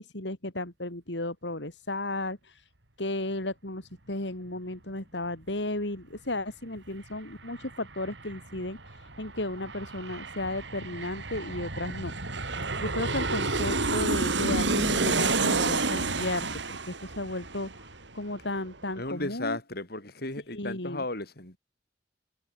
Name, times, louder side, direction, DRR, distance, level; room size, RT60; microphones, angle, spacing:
voice 1, 0.0-2.7 3.0-12.1 12.8-16.5 16.9-19.6 20.5-21.0, left 2 dB, 80° left, 4.3 m, -34 dB
Aircraft, 6.8-6.9 7.1-18.4 18.7-18.8, right 3 dB, 85° right, 4.5 m, -30 dB
voice 2, 19.0-21.6, left 2 dB, 60° left, 6.1 m, -35 dB
head